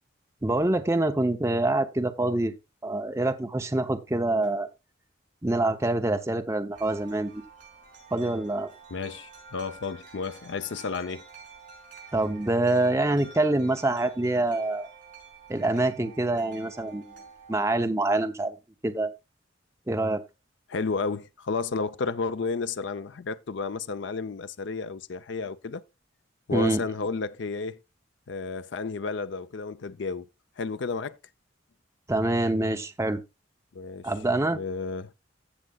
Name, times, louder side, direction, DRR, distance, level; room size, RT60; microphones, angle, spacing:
voice 1, 0.4-2.5 2.8-4.7 5.4-7.4 8.1-8.7 12.1-14.9 15.5-17.1 17.5-18.6 18.8-19.1 19.9-20.2 26.5-26.8 32.1-33.2 34.0-34.6, right 2 dB, 15° right, 0.6 m, -25 dB
Wind chime, 6.7-17.5, right 5 dB, 45° right, 6.0 m, -49 dB
voice 2, 8.9-11.2 20.7-25.8 26.5-27.8 28.3-30.3 30.6-31.2 33.7-34.1 34.5-35.1, left 4 dB, 65° left, 0.5 m, -32 dB
15.5 x 6.5 x 2.3 m
head